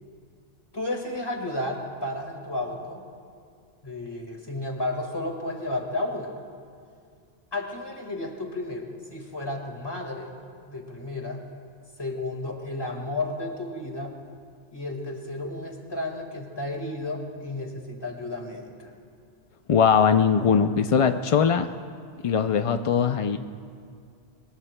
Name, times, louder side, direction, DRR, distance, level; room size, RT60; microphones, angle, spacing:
voice 1, 0.7-3.1 3.8-6.3 7.5-10.3 10.6-11.4 12.0-14.2 14.7-18.9, left 2 dB, 20° left, 2 dB, 1.7 m, -32 dB
voice 2, 19.7-21.7 22.2-23.4, left 7 dB, 60° left, 7 dB, 0.3 m, -20 dB
22.5 x 21.5 x 2.2 m, 2.2 s
omnidirectional pair, 1.2 m